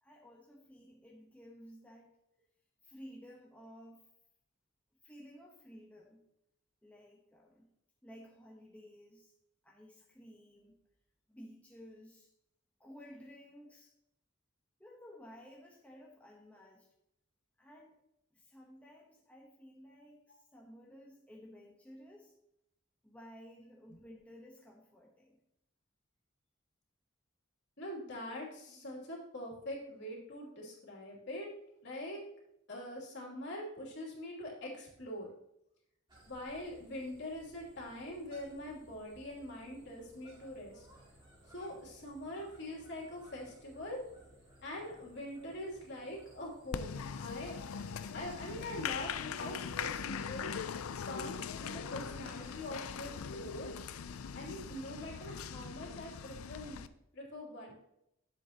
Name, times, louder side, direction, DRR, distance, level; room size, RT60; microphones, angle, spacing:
voice 1, 0.0-2.1 2.8-4.1 5.0-6.2 6.8-7.7 8.0-9.3 9.6-10.8 11.3-12.3 12.8-13.9 14.8-16.9 17.6-18.0 18.3-22.4 23.0-25.4, equal, 5° left, -2 dB, 1.0 m, -55 dB
voice 2, 27.8-31.5 31.8-32.2 32.7-35.3 36.3-40.9 41.5-44.0 44.6-47.6 48.1-50.6 51.1-53.7 54.3-56.8 57.1-57.7, left 1 dB, 55° left, -2 dB, 2.8 m, -43 dB
sound 1, 36.1-52.8, right 1 dB, 20° right, 3.0 m, -61 dB
Applause, 46.7-56.9, left 6 dB, 85° left, 0.5 m, -41 dB
11.0 x 7.6 x 2.9 m, 0.80 s
head